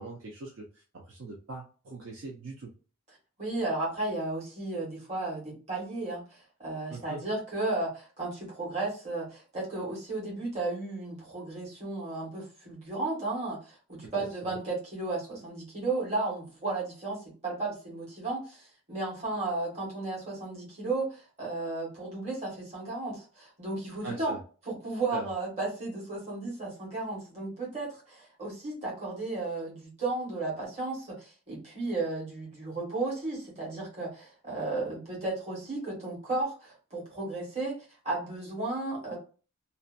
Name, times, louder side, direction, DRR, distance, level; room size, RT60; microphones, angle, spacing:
voice 1, 0.0-2.7 6.9-7.2 14.2-14.5 24.0-24.4 25.1-25.3, right 3 dB, 60° right, -1 dB, 0.5 m, -41 dB
voice 2, 3.4-24.3 24.7-39.2, right 2 dB, 30° right, -5 dB, 1.2 m, -34 dB
2.7 x 2.2 x 2.4 m, 0.37 s
head